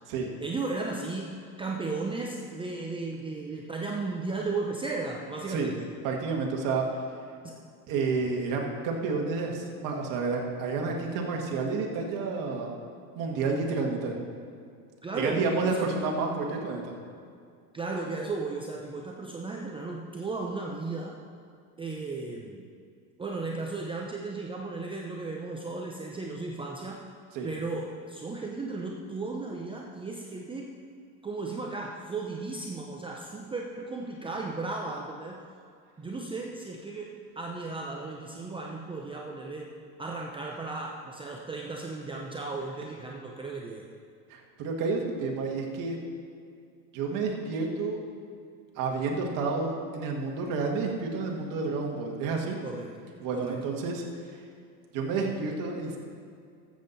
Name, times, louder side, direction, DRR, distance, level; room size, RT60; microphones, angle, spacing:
voice 1, 0.4-5.9 7.4-7.5 15.0-15.9 17.7-21.2 21.8-22.6 23.2-27.0 27.4-30.7 31.2-35.4 36.0-43.8 52.6-52.9 53.3-53.6, right 3 dB, 15° right, -1 dB, 0.6 m, -35 dB
voice 2, 6.0-6.9 7.9-12.7 13.2-14.2 15.1-16.9 27.3-27.5 44.3-46.0 46.9-48.0 48.8-52.6 53.2-54.0 54.9-56.0, right 4 dB, 50° right, 1 dB, 1.8 m, -30 dB
13.5 x 7.7 x 4.1 m, 2.3 s
supercardioid pair, 135°, 41 cm